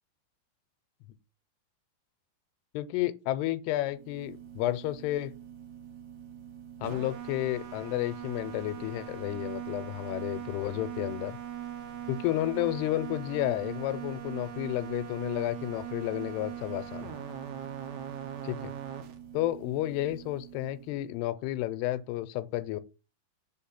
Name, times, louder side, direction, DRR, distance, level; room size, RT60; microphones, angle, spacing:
voice 1, 2.7-5.3 6.8-11.4 12.1-17.2 18.5-18.6 19.3-22.8, left 15 dB, 85° left, 2.6 m, -31 dB
sound 1, 3.9-21.1, right 10 dB, 75° right, 1.8 m, -41 dB
5.4 x 4.2 x 5.8 m
omnidirectional pair, 4.6 m